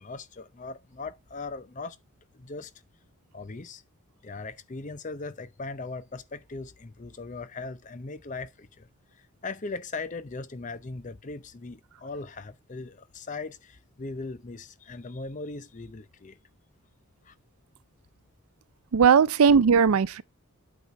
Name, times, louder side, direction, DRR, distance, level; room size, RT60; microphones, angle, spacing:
voice 1, 0.0-2.0 2.3-2.7 3.3-3.8 4.2-16.4 17.2-17.3, left 3 dB, 35° left, 0.6 m, -39 dB
voice 2, 18.9-20.2, right 6 dB, 80° right, 0.4 m, -18 dB
8.7 x 4.1 x 4.5 m
head